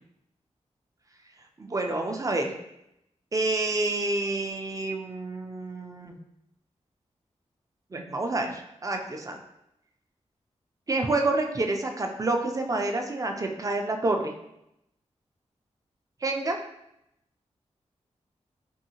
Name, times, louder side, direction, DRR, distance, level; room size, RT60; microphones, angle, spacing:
voice 1, 1.6-2.5 3.3-6.2 7.9-9.4 10.9-14.3 16.2-16.6, right 2 dB, 30° right, 4 dB, 0.4 m, -28 dB
2.7 x 2.7 x 2.7 m, 0.83 s
cardioid pair, 55°, 12 cm